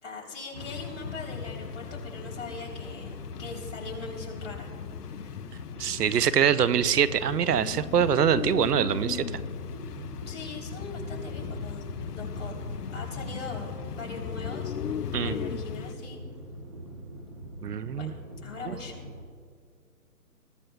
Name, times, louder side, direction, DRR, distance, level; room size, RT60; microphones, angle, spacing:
voice 1, 0.0-4.7 5.0-5.4 10.3-12.6 12.9-14.7 15.2-16.2 17.9-18.1 18.4-19.0, left 3 dB, 50° left, -2 dB, 3.6 m, -41 dB
sound 1, 0.5-15.9, left 9 dB, 85° left, 0.7 m, -38 dB
sound 2, 0.5-19.2, right 1 dB, 20° right, 0.8 m, -43 dB
voice 2, 5.8-9.2 15.1-15.4 17.6-18.1 18.6-18.8, right 8 dB, 90° right, 16 dB, 0.7 m, -24 dB
22.0 x 13.5 x 2.3 m, 2.2 s
hypercardioid pair, 165°, 45 cm